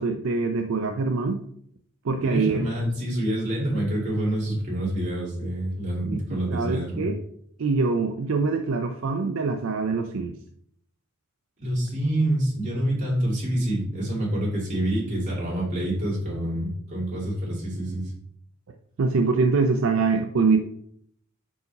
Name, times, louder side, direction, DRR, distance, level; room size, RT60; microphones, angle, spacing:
voice 1, 0.0-1.4 2.0-2.6 6.1-6.2 6.5-7.2 7.6-10.4 19.0-20.6, right 4 dB, 65° right, 5 dB, 0.4 m, -24 dB
voice 2, 2.2-7.1 11.6-18.1, right 1 dB, 35° right, -5 dB, 2.5 m, -27 dB
5.3 x 4.7 x 4.0 m, 0.68 s
head